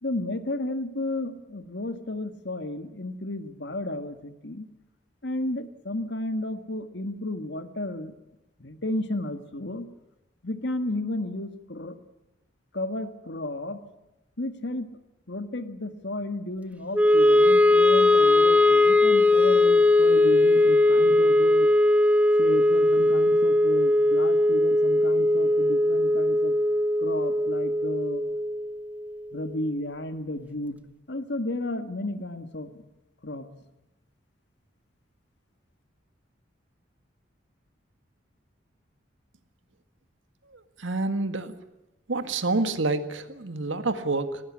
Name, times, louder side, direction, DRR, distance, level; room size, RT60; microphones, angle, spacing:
voice 1, 0.0-4.7 5.2-8.1 8.6-9.9 10.4-12.0 12.7-13.8 14.4-14.9 15.3-21.7 22.4-26.5 27.0-28.2 29.3-30.8 31.1-32.8 33.2-33.5, left 1 dB, 65° left, 9 dB, 1.7 m, -33 dB
Wind instrument woodwind instrument, 16.9-29.2, left 1 dB, 5° right, 0.8 m, -20 dB
voice 2, 40.5-41.6 42.1-44.4, right 3 dB, 80° right, 9 dB, 1.8 m, -28 dB
19.5 x 18.0 x 9.9 m, 0.96 s
head